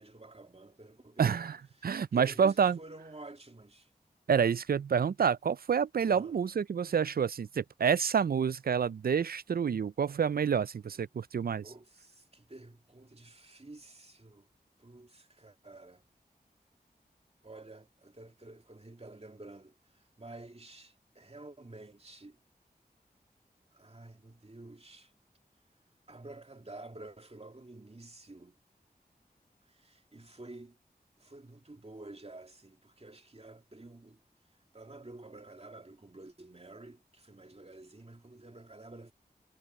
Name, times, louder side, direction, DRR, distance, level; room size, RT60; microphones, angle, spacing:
voice 1, 0.0-3.9 6.1-6.4 10.8-11.0 11.6-14.5 14.8-16.0 17.4-22.4 23.7-25.1 26.1-28.6 29.6-30.8 31.2-34.2 34.7-39.1, right 2 dB, 40° right, 2.2 m, -50 dB
voice 2, 1.2-1.5 1.8-2.8 4.3-11.6, right 7 dB, 65° right, 0.4 m, -28 dB
wide cardioid pair, 45°, 17 cm